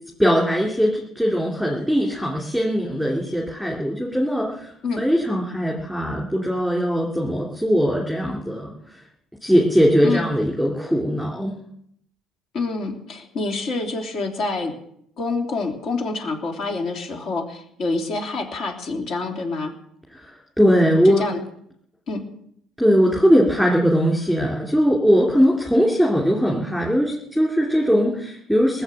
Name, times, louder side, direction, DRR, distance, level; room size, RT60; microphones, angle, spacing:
voice 1, 0.2-9.0 9.4-11.6 20.1-21.2 22.8-28.8, equal, 5° left, -3 dB, 2.7 m, -20 dB
voice 2, 12.5-14.7 15.2-19.7 21.0-21.4 22.1-22.2, left 3 dB, 50° left, 3 dB, 2.9 m, -27 dB
19.5 x 7.4 x 7.6 m, 0.71 s
cardioid pair, 125°, 0 cm